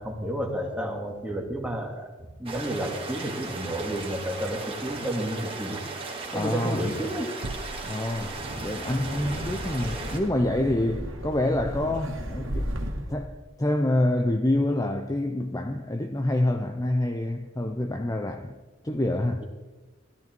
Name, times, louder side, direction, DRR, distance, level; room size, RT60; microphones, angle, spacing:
voice 1, 0.0-5.8 6.2-7.4, right 1 dB, 5° right, 2.2 m, -31 dB
sound 1, 2.4-10.2, right 3 dB, 25° right, 2.5 m, -37 dB
voice 2, 6.3-6.9 7.8-12.7 13.1-18.6 18.8-19.4, left 1 dB, 15° left, 0.7 m, -27 dB
sound 2, 7.4-9.0, right 2 dB, 80° right, 1.1 m, -40 dB
Wind, 8.2-13.3, equal, 60° right, 2.1 m, -35 dB
15.5 x 13.5 x 4.5 m
head